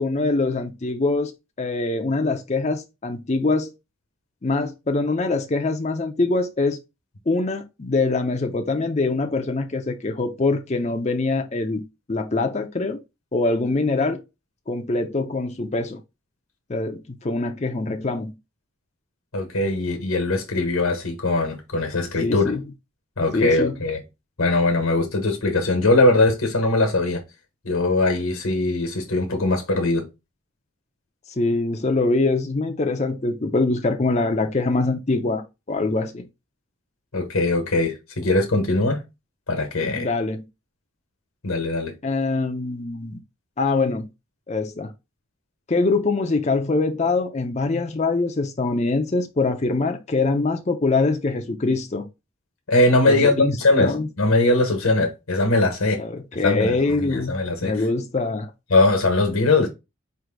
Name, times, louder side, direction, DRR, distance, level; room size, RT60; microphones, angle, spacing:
voice 1, 0.0-1.3 1.6-3.7 4.4-6.8 7.3-13.0 13.3-14.2 14.7-16.0 16.7-18.3 22.2-22.6 23.3-23.8 31.4-36.3 40.0-40.4 42.0-43.2 43.6-44.1 44.5-44.9 45.7-52.1 53.0-53.5 53.8-54.1 56.0-57.3 57.6-58.5, left 3 dB, 30° left, 0.5 m, -23 dB
voice 2, 19.3-22.5 23.2-24.0 24.4-27.2 27.6-30.1 37.1-39.0 39.5-40.1 41.4-41.9 52.7-56.0 56.4-57.9 58.7-59.7, left 2 dB, 80° left, 1.2 m, -21 dB
4.7 x 2.6 x 3.7 m
head